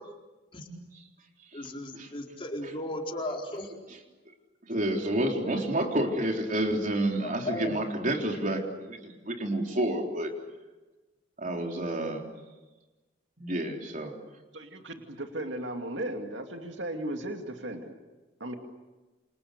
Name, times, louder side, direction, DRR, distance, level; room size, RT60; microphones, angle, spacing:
voice 1, 1.5-3.7 5.3-5.4 7.2-7.7, left 1 dB, 30° left, 0 dB, 4.6 m, -36 dB
voice 2, 4.7-10.3 11.4-12.2 13.4-14.1, right 1 dB, 45° right, 2 dB, 3.9 m, -29 dB
voice 3, 14.5-17.9 18.4-18.5, right 1 dB, 70° right, 4 dB, 2.6 m, -36 dB
28.5 x 27.5 x 6.8 m, 1.2 s
head